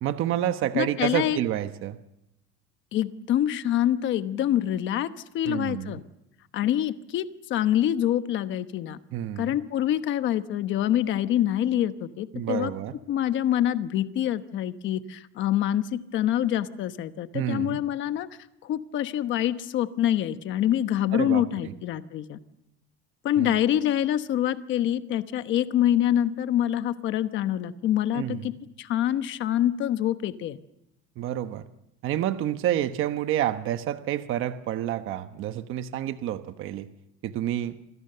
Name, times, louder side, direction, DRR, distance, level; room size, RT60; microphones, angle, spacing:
voice 1, 0.0-2.0 5.4-6.0 9.1-9.6 12.3-13.0 17.3-17.8 21.1-21.7 23.4-23.6 28.1-28.5 31.2-31.6 32.0-36.9 37.2-37.8, right 12 dB, 40° right, 9 dB, 1.1 m, -29 dB
voice 2, 0.7-1.4 2.9-5.1 5.3-6.0 6.5-9.0 9.4-12.7 13.1-18.3 18.6-22.4 23.2-28.5 28.8-30.6, left 11 dB, 35° left, 11 dB, 1.1 m, -26 dB
28.0 x 24.5 x 6.8 m, 0.85 s
cardioid pair, 175°, 33 cm